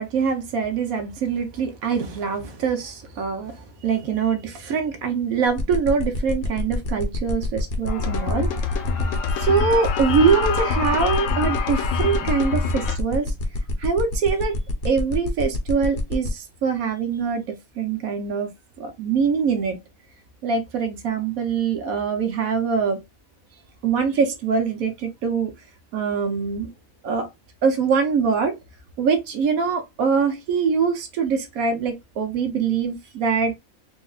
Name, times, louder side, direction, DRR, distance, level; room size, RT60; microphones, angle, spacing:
voice 1, 0.0-8.5 9.4-13.3 13.8-14.6 14.8-18.5 18.8-19.8 20.4-23.0 23.8-25.5 25.9-26.7 27.0-27.3 27.6-28.6 29.0-33.6, right 5 dB, 80° right, 1.3 m, -23 dB
sound 1, 5.5-16.3, left 2 dB, 50° left, 0.8 m, -27 dB
sound 2, 7.9-13.0, left 6 dB, 70° left, 1.0 m, -26 dB
4.1 x 2.4 x 2.3 m
omnidirectional pair, 1.5 m